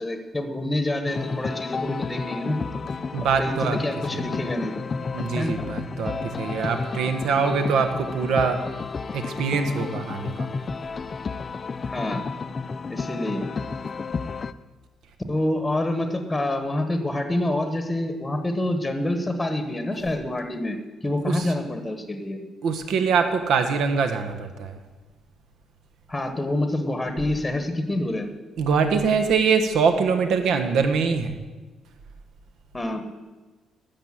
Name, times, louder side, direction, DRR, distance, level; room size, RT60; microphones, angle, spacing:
voice 1, 0.0-2.6 3.4-4.7 5.3-5.7 11.9-12.3 12.9-13.6 15.3-22.5 26.1-28.3 32.7-33.1, left 1 dB, 10° left, 7 dB, 1.1 m, -27 dB
sound 1, 1.0-14.5, left 4 dB, 30° left, 0.4 m, -32 dB
voice 2, 3.1-3.8 4.1-4.2 5.1-8.6 9.1-10.5 21.3-21.5 22.6-24.8 28.6-31.3, right 5 dB, 75° right, 7 dB, 1.3 m, -23 dB
12.0 x 6.9 x 7.5 m, 1.3 s
cardioid pair, 145°, 0 cm